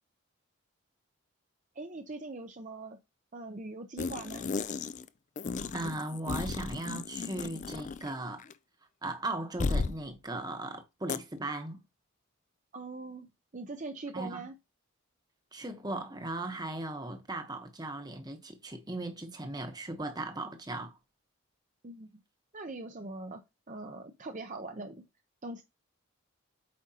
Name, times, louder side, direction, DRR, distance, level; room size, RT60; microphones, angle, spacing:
voice 1, 1.7-3.0 3.3-4.5 12.7-13.3 13.5-14.5 21.8-22.2 22.5-23.4 23.7-25.0 25.4-25.6, right 2 dB, 35° right, 0.7 m, -41 dB
sound 1, 4.0-5.1 5.4-8.1 8.4-8.5 9.6-10.0 11.1-11.2, left 4 dB, 35° left, 0.4 m, -34 dB
voice 2, 5.7-8.4 9.0-11.8 14.1-14.5 15.5-21.0, right 2 dB, 20° right, 1.0 m, -37 dB
8.6 x 5.0 x 2.9 m
head